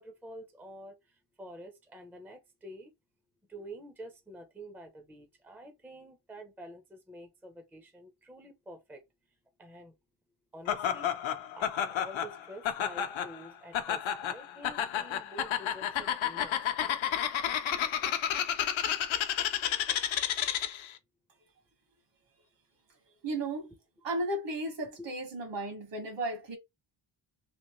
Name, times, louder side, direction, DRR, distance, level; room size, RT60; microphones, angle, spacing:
voice 1, 0.0-2.9 3.5-9.0 9.6-9.9 10.5-11.1 11.5-16.5 16.8-17.0 25.0-25.1, right 1 dB, 5° right, 0.5 m, -48 dB
Laughter, 10.7-20.9, left 9 dB, 75° left, 0.8 m, -31 dB
voice 2, 23.2-23.7 24.0-26.6, right 1 dB, 65° right, 1.5 m, -34 dB
3.2 x 2.9 x 3.0 m
wide cardioid pair, 160°, 47 cm